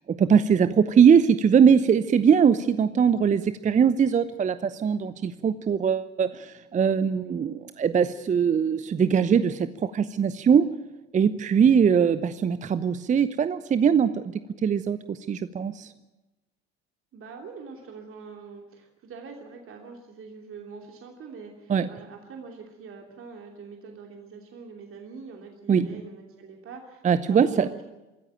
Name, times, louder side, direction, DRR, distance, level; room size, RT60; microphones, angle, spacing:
voice 1, 0.1-10.7 11.1-14.2 14.6-15.9 21.7-21.9 25.7-25.9 27.0-27.7, right 7 dB, 20° right, 14 dB, 0.8 m, -21 dB
voice 2, 17.1-27.8, right 5 dB, 40° right, 2 dB, 3.0 m, -44 dB
24.5 x 14.0 x 9.2 m, 1.1 s
figure-of-eight pair, 65°, 33 cm